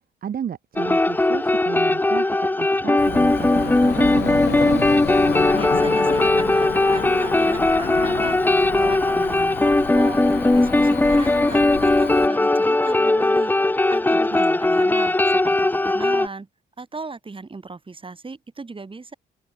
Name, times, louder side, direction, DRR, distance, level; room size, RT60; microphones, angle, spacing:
voice 1, 0.2-4.9 14.3-14.6, right 8 dB, 50° right, 1.1 m, -33 dB
sound 1, 0.8-16.3, left 2 dB, 10° left, 0.7 m, -19 dB
Cricket / Motor vehicle (road), 3.0-12.3, left 10 dB, 55° left, 0.8 m, -31 dB
voice 2, 5.5-10.2 10.5-13.5 13.9-16.5 16.8-19.1, right 3 dB, 25° right, 7.6 m, -37 dB
open air
cardioid pair, 90°, 20 cm